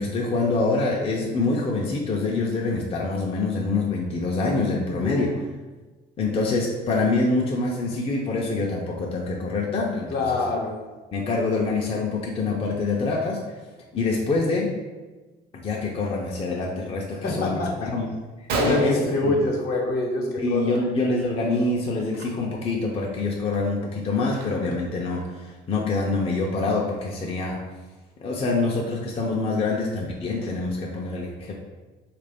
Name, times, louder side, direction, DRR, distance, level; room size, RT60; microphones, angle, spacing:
voice 1, 0.0-5.3 6.2-10.2 11.1-13.4 13.9-14.7 15.5-18.1 18.6-19.3 20.4-27.6 28.2-31.5, left 3 dB, 35° left, -1 dB, 0.5 m, -25 dB
voice 2, 5.0-5.4 10.1-10.8 17.1-17.9 18.6-20.8, left 2 dB, 65° left, 0 dB, 0.8 m, -25 dB
Gunshot gunfire, 18.2-18.3 18.5-20.1 20.4-20.8 21.0-21.3 22.1-22.2 22.8-22.9 23.3-24.9, right 2 dB, 70° right, 0.7 m, -31 dB
3.6 x 2.5 x 3.4 m, 1.2 s
cardioid pair, 110°, 17 cm